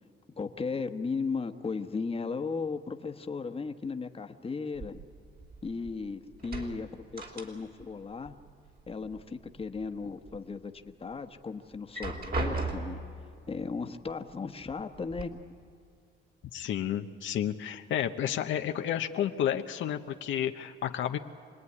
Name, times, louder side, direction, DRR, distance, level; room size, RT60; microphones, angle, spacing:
voice 1, 0.4-5.0 5.6-8.3 8.9-13.0 13.5-15.4, left 4 dB, 30° left, 6 dB, 1.2 m, -36 dB
sound 1, 4.8-6.0 6.3-7.9 8.2-9.2 9.6-10.4 10.9-11.0 11.7-13.1 14.1-14.2 14.6-15.2, right 3 dB, 50° right, 3.6 m, -37 dB
voice 2, 16.5-21.2, left 10 dB, 75° left, 6 dB, 0.9 m, -31 dB
26.5 x 19.0 x 9.7 m, 2.3 s
cardioid pair, 90°, 20 cm